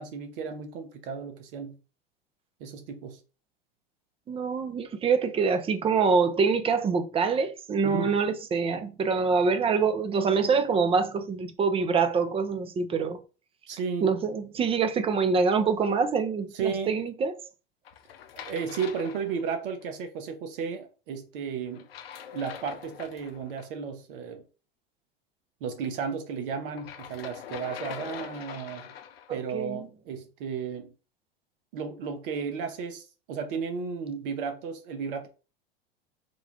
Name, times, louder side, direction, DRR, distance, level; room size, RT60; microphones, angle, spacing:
voice 1, 0.0-1.8 2.6-3.2 7.8-8.2 13.7-14.1 16.5-16.9 18.4-21.9 22.3-24.4 25.6-28.9 29.3-30.9 31.7-35.3, right 6 dB, 60° right, 1.1 m, -34 dB
voice 2, 4.3-13.2 14.0-17.3 29.3-29.9, right 5 dB, 20° right, 0.5 m, -25 dB
sound 1, 17.8-19.8 21.7-23.7 26.7-29.4, left 8 dB, 75° left, 0.6 m, -43 dB
3.7 x 2.3 x 3.5 m
hypercardioid pair, 85°, 30 cm